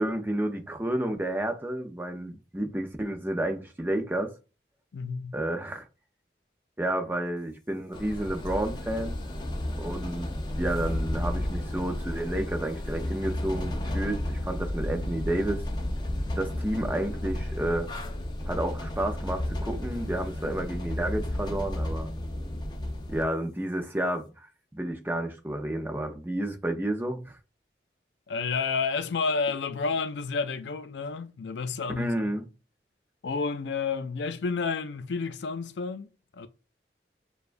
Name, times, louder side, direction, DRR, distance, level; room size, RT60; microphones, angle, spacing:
voice 1, 0.0-4.3 5.3-5.8 6.8-9.2 9.8-15.6 16.4-17.9 18.5-22.1 23.1-24.5 24.7-27.4 32.0-32.5, right 1 dB, 10° right, 0.6 m, -31 dB
voice 2, 4.9-5.4 28.3-32.3 33.2-36.5, left 4 dB, 90° left, 0.4 m, -30 dB
sound 1, 7.9-23.2, left 1 dB, 25° left, 0.5 m, -32 dB
6.6 x 2.3 x 2.5 m
head